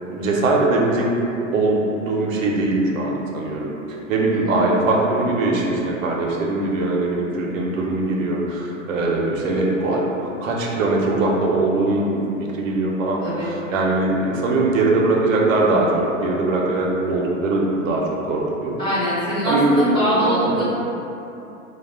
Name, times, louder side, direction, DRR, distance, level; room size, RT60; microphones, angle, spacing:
voice 1, 0.1-1.1 1.5-3.7 4.1-12.2 12.6-18.8 19.5-20.5, right 2 dB, 80° right, -2 dB, 0.6 m, -21 dB
voice 2, 13.2-13.5 18.8-20.6, equal, 10° left, -11 dB, 0.9 m, -22 dB
2.3 x 2.1 x 3.4 m, 2.9 s
hypercardioid pair, 120°, 39 cm